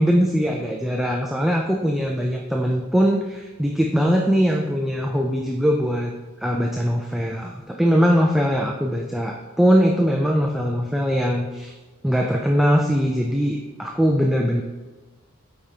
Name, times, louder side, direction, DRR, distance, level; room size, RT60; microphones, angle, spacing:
voice 1, 0.0-11.7 12.0-14.6, equal, ahead, 1 dB, 0.3 m, -21 dB
7.8 x 5.0 x 2.8 m, 1.2 s
head